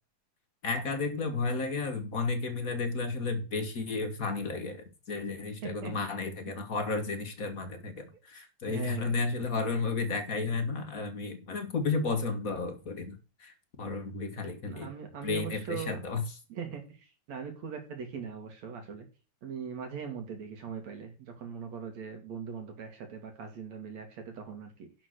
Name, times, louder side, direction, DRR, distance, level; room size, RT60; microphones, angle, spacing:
voice 1, 0.6-14.9 15.2-16.2, left 4 dB, 55° left, 8 dB, 0.9 m, -33 dB
voice 2, 5.6-5.9 8.7-9.1 14.6-16.0 16.5-19.1 19.4-24.9, right 7 dB, 65° right, 4 dB, 3.1 m, -40 dB
11.5 x 5.3 x 6.3 m, 0.34 s
omnidirectional pair, 3.4 m